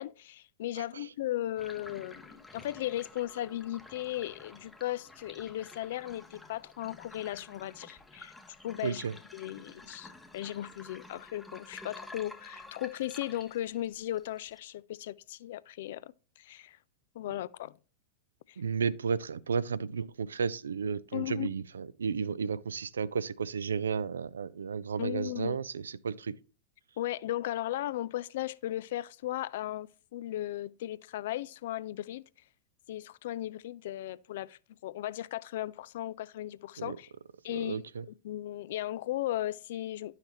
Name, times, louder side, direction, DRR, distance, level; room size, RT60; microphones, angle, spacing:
voice 1, 0.0-8.3 8.6-9.0 9.3-16.8 17.1-17.8 18.5-18.6 21.1-21.5 25.0-25.6 27.0-32.2 32.9-37.1 37.4-37.8 38.2-40.1, left 14 dB, 55° left, 0.3 m, -36 dB
voice 2, 0.8-1.1 8.8-9.1 18.6-26.4 36.8-37.0 37.5-38.0, right 6 dB, 70° right, 0.4 m, -33 dB
sound 1, 1.6-14.6, left 2 dB, 10° left, 0.8 m, -51 dB
11.0 x 5.7 x 2.9 m
figure-of-eight pair, 90°, 0 cm